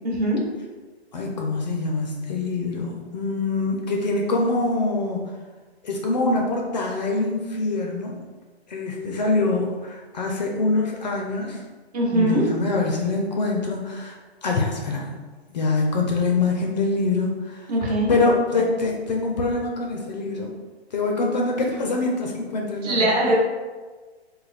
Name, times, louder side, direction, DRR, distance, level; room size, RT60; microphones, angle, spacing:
voice 1, 0.0-0.4 11.9-12.4 17.7-18.1 22.8-23.4, right 1 dB, 35° right, -4 dB, 1.1 m, -21 dB
voice 2, 1.1-5.2 5.8-8.2 8.7-11.6 12.1-14.2 14.4-15.1 15.5-17.7 18.1-20.5 20.9-23.1, left 3 dB, 40° left, 0 dB, 0.5 m, -24 dB
3.3 x 2.2 x 4.0 m, 1.4 s
hypercardioid pair, 155°, 33 cm